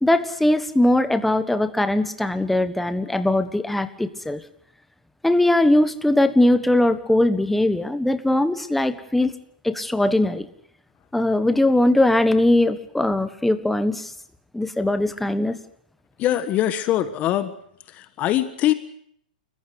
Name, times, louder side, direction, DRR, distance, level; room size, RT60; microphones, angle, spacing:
voice 1, 0.0-4.4 5.2-9.3 9.6-10.5 11.1-14.1 14.5-15.6, left 1 dB, 5° left, 11 dB, 1.4 m, -20 dB
voice 2, 16.2-17.5 17.9-18.7, left 13 dB, 30° left, 12 dB, 1.4 m, -22 dB
30.0 x 15.0 x 8.1 m, 0.67 s
hypercardioid pair, 130°, 5 cm